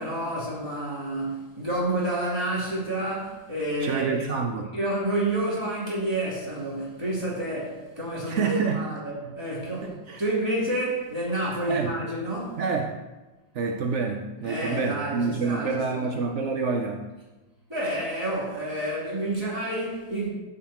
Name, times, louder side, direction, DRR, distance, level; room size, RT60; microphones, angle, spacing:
voice 1, 0.0-4.3 4.7-12.6 14.4-16.1 17.7-20.3, right 1 dB, 15° right, -8 dB, 3.2 m, -29 dB
voice 2, 3.8-4.7 8.3-8.9 9.8-10.2 11.7-12.0 12.6-12.9 13.5-17.0, right 4 dB, 85° right, 3 dB, 0.6 m, -27 dB
13.0 x 6.0 x 3.0 m, 1.1 s
omnidirectional pair, 2.0 m